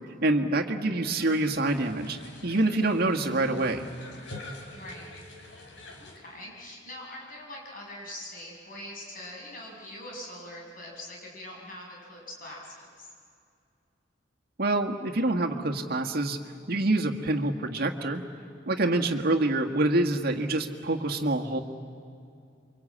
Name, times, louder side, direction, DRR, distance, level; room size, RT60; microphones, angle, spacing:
voice 1, 0.2-3.9 14.6-16.4 16.7-18.2 18.7-21.6, right 2 dB, 55° right, 2 dB, 1.7 m, -26 dB
sound 1, 1.0-6.2, left 1 dB, 70° left, 3.8 m, -46 dB
voice 2, 4.7-5.1 6.0-13.1, left 1 dB, 50° left, -2 dB, 6.7 m, -43 dB
28.0 x 24.0 x 8.7 m, 2.4 s
head